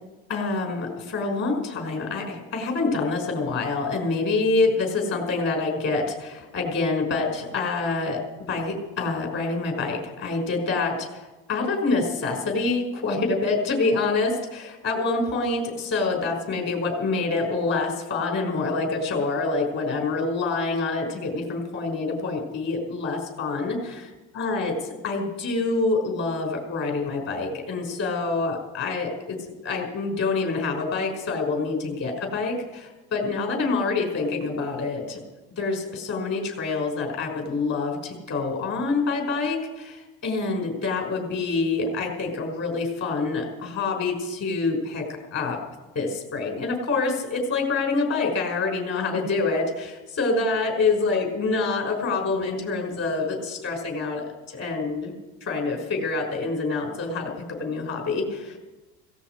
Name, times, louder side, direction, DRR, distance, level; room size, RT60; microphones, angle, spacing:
voice 1, 0.3-8.2 8.5-23.8 24.4-29.4 29.6-35.2 35.6-45.0 45.3-45.6 45.9-55.1 55.4-58.6, left 3 dB, 50° left, 2 dB, 5.7 m, -26 dB
17.0 x 15.5 x 4.8 m, 1.1 s
supercardioid pair, 90°, 34 cm